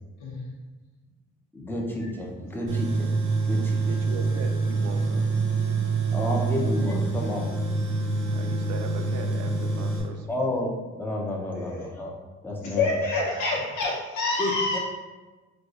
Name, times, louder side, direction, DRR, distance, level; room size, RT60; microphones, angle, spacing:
voice 1, 1.5-3.1 3.5-3.9 6.1-7.5 10.3-12.1 12.4-12.9 14.4-14.8, left 1 dB, 5° left, -1 dB, 0.6 m, -30 dB
Tools, 2.7-10.0, right 3 dB, 85° right, 1.0 m, -26 dB
voice 2, 3.8-5.4 6.6-6.7 8.3-10.5, right 5 dB, 60° right, 5 dB, 0.5 m, -39 dB
voice 3, 11.5-11.8 12.6-14.8, left 3 dB, 85° left, -2 dB, 1.0 m, -27 dB
4.6 x 2.3 x 2.5 m, 1.2 s
cardioid pair, 90°, 30 cm